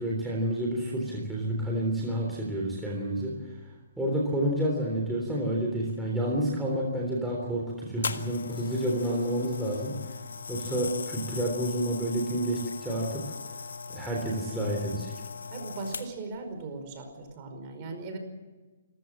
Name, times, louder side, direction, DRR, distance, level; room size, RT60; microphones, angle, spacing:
voice 1, 0.0-3.3 4.0-9.9 10.5-13.2 13.9-15.1, right 1 dB, 5° right, -4 dB, 3.6 m, -29 dB
sound 1, 8.0-16.4 17.1-17.3, left 5 dB, 85° left, 1.7 m, -39 dB
voice 2, 15.5-18.2, right 3 dB, 30° right, 5 dB, 5.1 m, -38 dB
27.0 x 15.5 x 7.5 m, 1.3 s
hypercardioid pair, 165°, 0 cm